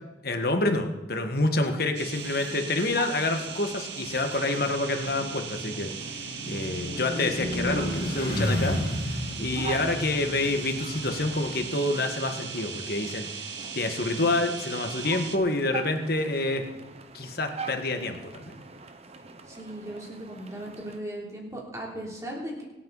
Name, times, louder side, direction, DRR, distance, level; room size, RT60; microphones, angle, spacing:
voice 1, 0.2-8.8 9.1-13.4 13.7-16.6 17.1-18.6, left 2 dB, 55° left, 5 dB, 1.6 m, -28 dB
sound 1, 1.9-15.4, right 6 dB, 70° right, 1.2 m, -38 dB
sound 2, 2.1-21.0, right 4 dB, 35° right, 0.9 m, -44 dB
sound 3, 4.1-11.5, left 1 dB, 35° left, 6.5 m, -33 dB
voice 2, 19.5-22.6, right 1 dB, 15° right, -2 dB, 3.1 m, -37 dB
25.0 x 8.9 x 4.1 m, 1.0 s
head